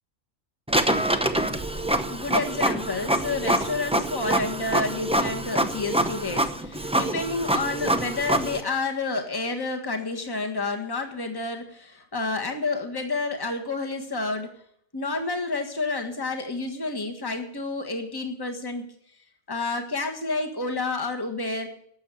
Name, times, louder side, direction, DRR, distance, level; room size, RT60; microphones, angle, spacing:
Printer, 0.7-8.6, right 1 dB, 5° right, 0.6 m, -25 dB
voice 1, 1.7-14.5 14.9-18.9 19.5-21.7, left 3 dB, 15° left, 3 dB, 1.5 m, -30 dB
12.0 x 7.6 x 9.0 m, 0.66 s
omnidirectional pair, 1.4 m